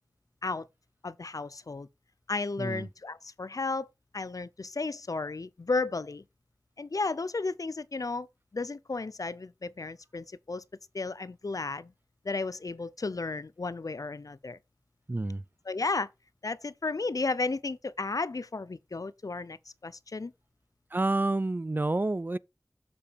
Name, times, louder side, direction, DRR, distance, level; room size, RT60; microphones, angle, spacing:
voice 1, 1.0-1.9 2.3-6.2 6.8-8.3 8.5-10.6 10.9-11.9 12.2-14.6 15.7-16.1 16.4-19.6 19.8-20.3, left 3 dB, 70° left, 0.5 m, -33 dB
voice 2, 2.6-2.9 15.1-15.4 20.9-22.4, right 2 dB, 30° right, 0.3 m, -29 dB
7.1 x 4.8 x 5.1 m
wide cardioid pair, 45°, 6 cm